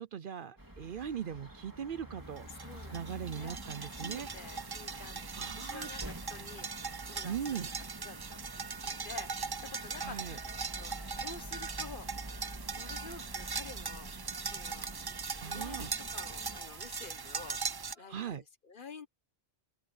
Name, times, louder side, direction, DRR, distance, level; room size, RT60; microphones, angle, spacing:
voice 1, 0.0-2.5 2.9-4.6 5.4-5.9 7.2-7.7 10.0-10.4 15.4-15.9 18.1-18.4, right 8 dB, 60° right, 0.7 m, -40 dB
sound 1, 0.6-16.6, right 1 dB, 20° right, 2.3 m, -48 dB
sound 2, 2.4-17.9, right 5 dB, 35° right, 0.4 m, -40 dB
voice 2, 2.5-7.7 8.0-8.5 8.8-12.1 12.4-12.5 12.7-14.1 14.4-14.9 15.4-17.6 18.0-19.1, left 5 dB, 50° left, 1.3 m, -50 dB
sound 3, 9.9-18.1, equal, 25° left, 2.3 m, -60 dB
open air
omnidirectional pair, 1.1 m